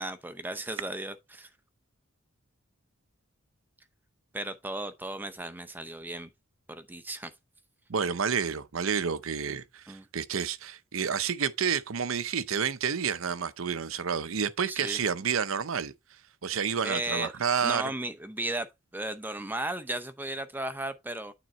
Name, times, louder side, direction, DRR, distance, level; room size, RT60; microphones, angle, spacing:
voice 1, 0.0-1.5 4.3-6.3 6.7-7.3 9.9-10.1 14.7-15.0 16.8-17.3 17.6-21.3, right 1 dB, 10° right, 0.6 m, -35 dB
voice 2, 7.9-15.9 16.4-17.9, right 6 dB, 75° right, 0.7 m, -29 dB
9.1 x 3.8 x 4.3 m
head